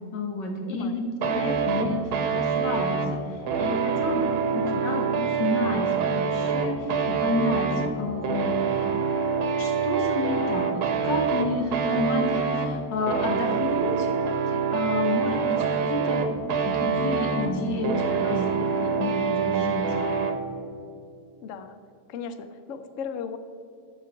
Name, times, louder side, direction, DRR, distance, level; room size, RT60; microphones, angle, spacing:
voice 1, 0.1-7.7 8.0-8.5 9.5-14.1 14.5-16.3 16.6-19.8, left 2 dB, 85° left, 1 dB, 2.2 m, -30 dB
voice 2, 0.6-1.0 21.4-21.8 22.1-23.4, left 6 dB, 65° left, 10 dB, 0.8 m, -36 dB
sound 1, 1.2-20.4, right 6 dB, 70° right, 1.3 m, -26 dB
12.0 x 4.9 x 5.8 m, 2.4 s
omnidirectional pair, 1.8 m